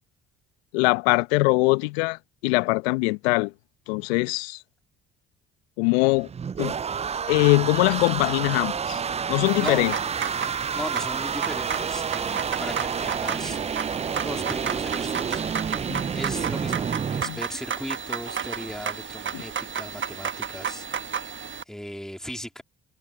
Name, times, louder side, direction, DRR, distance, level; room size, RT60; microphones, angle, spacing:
voice 1, 0.7-3.5 3.9-4.6 5.8-6.3 6.6-6.7 7.3-9.0 9.3-9.9 15.9-16.0 17.2-17.4 19.3-19.4, left 25 dB, 80° left, 1.1 m, -22 dB
sound 1, 6.0-17.2, right 6 dB, 20° right, 0.4 m, -29 dB
sound 2, 9.4-21.6, right 7 dB, 40° right, 1.3 m, -33 dB
voice 2, 9.6-9.9 10.7-13.6 14.1-15.6 16.1-20.9 21.7-22.6, equal, ahead, 3.1 m, -37 dB
hypercardioid pair, 55°, 31 cm